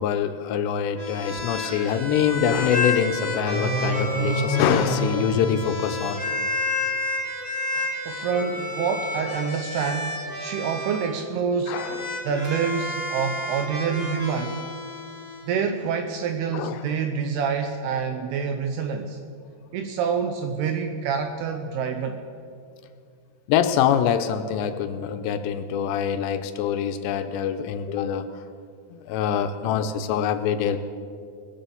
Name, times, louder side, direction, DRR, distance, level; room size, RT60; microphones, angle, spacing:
voice 1, 0.0-6.2 11.7-12.2 16.5-16.8 23.5-28.3 29.1-30.8, left 8 dB, 80° left, 9 dB, 2.5 m, -24 dB
sound 1, 1.0-11.1 11.7-15.5, left 2 dB, 50° right, 1.0 m, -31 dB
sound 2, 3.1-6.4, equal, 40° left, 2.5 m, -28 dB
voice 2, 7.7-11.8 12.3-14.6 15.5-19.2 19.7-22.2, right 6 dB, 85° right, 6 dB, 2.3 m, -27 dB
21.0 x 7.2 x 7.0 m, 2.4 s
omnidirectional pair, 5.5 m